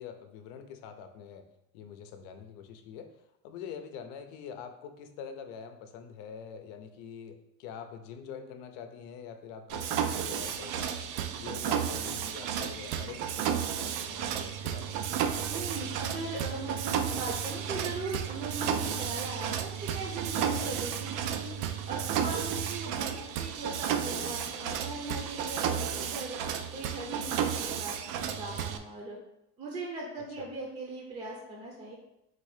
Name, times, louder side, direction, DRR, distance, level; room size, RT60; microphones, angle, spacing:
voice 1, 0.0-1.4 1.7-3.1 3.4-10.9 11.3-15.3 30.4-30.5, left 7 dB, 80° left, 7 dB, 0.7 m, -45 dB
Mechanisms, 9.7-28.8, right 8 dB, 65° right, 0.5 m, -33 dB
voice 2, 15.5-21.5 21.9-26.4 26.7-27.5 27.8-29.2 29.6-32.0, right 2 dB, 20° right, -1 dB, 0.6 m, -39 dB
4.0 x 2.7 x 4.9 m, 0.84 s
cardioid pair, 145°, 33 cm